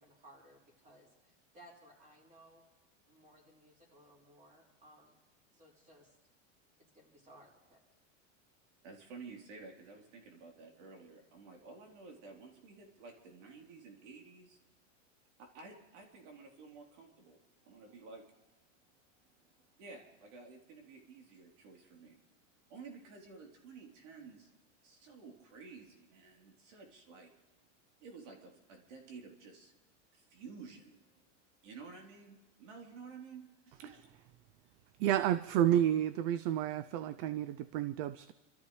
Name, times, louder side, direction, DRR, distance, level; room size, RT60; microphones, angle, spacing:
voice 1, 0.0-2.6 3.0-5.1 5.5-6.1 6.9-7.8, right 1 dB, 20° right, -2 dB, 4.9 m, -60 dB
voice 2, 8.8-14.6 15.4-18.2 19.4-22.2 22.7-24.5 24.8-27.3 28.0-29.7 30.1-31.2 31.6-34.1, right 4 dB, 70° right, 1 dB, 3.7 m, -52 dB
voice 3, 35.0-38.3, right 11 dB, 45° right, 15 dB, 0.5 m, -30 dB
29.0 x 13.5 x 3.3 m, 1.2 s
supercardioid pair, 140°, 37 cm